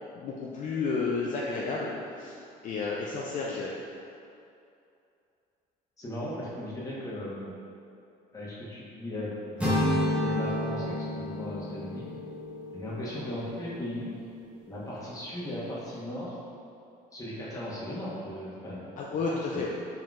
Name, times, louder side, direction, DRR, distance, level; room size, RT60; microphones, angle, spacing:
voice 1, 0.1-2.4 2.6-3.7 19.0-19.7, left 4 dB, 50° left, -3 dB, 0.4 m, -31 dB
voice 2, 6.0-7.5 8.3-12.1 12.7-14.1 14.7-16.4 17.1-18.8 19.2-19.7, left 1 dB, 20° left, -7 dB, 1.1 m, -37 dB
sound 1, 9.6-13.6, left 1 dB, 5° right, 0.9 m, -30 dB
4.3 x 3.8 x 2.4 m, 2.6 s
cardioid pair, 110°, 17 cm